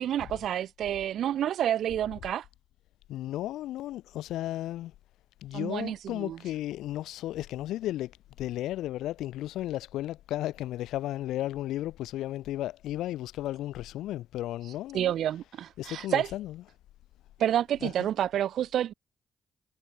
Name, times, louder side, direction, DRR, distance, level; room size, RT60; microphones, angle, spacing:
voice 1, 0.0-2.5 5.5-6.4 14.6-16.3 17.4-18.9, right 11 dB, 80° right, 1.0 m, -29 dB
voice 2, 3.1-4.9 5.4-8.1 8.4-15.1 15.8-16.6 17.8-17.9, left 14 dB, 90° left, 4.4 m, -34 dB
supercardioid pair, 55°, 0 cm